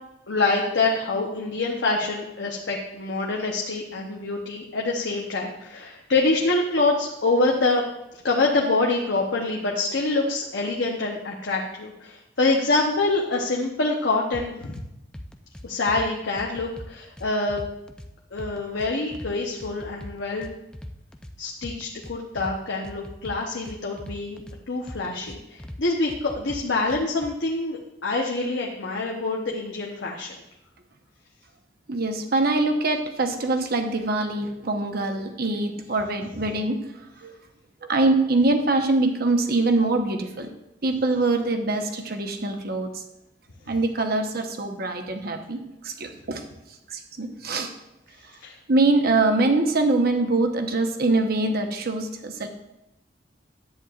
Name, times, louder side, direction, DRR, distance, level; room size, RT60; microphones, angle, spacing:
voice 1, 0.3-7.8 8.2-14.7 15.6-17.7 18.3-20.5 21.4-30.3 48.4-48.6, left 3 dB, 75° left, -1 dB, 0.9 m, -25 dB
sound 1, 14.3-14.8 15.1-16.1 16.4-18.1 18.4-19.3 19.6-21.3 21.6-22.6 22.8-24.6 24.9-25.8 26.1-27.3, left 1 dB, 5° left, 0.5 m, -40 dB
voice 2, 31.9-36.8 37.2-37.3 37.8-40.5 40.8-43.0 43.7-46.4 46.9-47.7 48.7-52.5, right 2 dB, 55° right, 5 dB, 1.0 m, -23 dB
10.5 x 8.5 x 2.4 m, 0.89 s
head